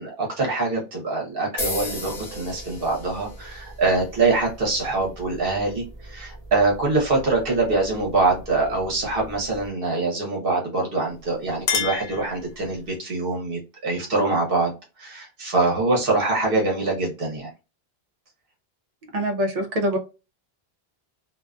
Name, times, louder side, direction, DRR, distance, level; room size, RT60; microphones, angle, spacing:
voice 1, 0.0-14.7 15.0-17.5, right 3 dB, 65° right, 1.0 m, -24 dB
sound 1, 1.6-9.7, left 1 dB, 45° left, 0.7 m, -37 dB
Chink clink, 11.1-13.0, left 6 dB, 85° left, 0.9 m, -30 dB
voice 2, 19.1-20.0, equal, 45° right, 0.6 m, -24 dB
2.5 x 2.4 x 2.2 m
omnidirectional pair, 1.0 m